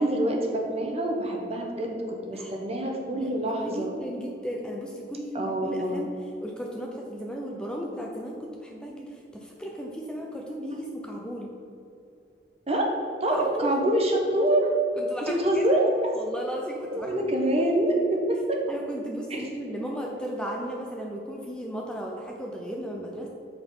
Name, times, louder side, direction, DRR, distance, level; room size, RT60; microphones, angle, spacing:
voice 1, 0.0-3.9 5.3-6.0 12.7-13.0 13.2-14.8 15.3-15.9 16.9-18.6 19.3-19.5, right 1 dB, 35° right, 1 dB, 1.1 m, -25 dB
voice 2, 3.1-6.1 6.4-11.5 13.3-13.7 15.0-15.6 16.1-17.5 18.7-23.3, equal, 5° left, -1 dB, 0.6 m, -35 dB
7.7 x 4.6 x 5.4 m, 2.7 s
head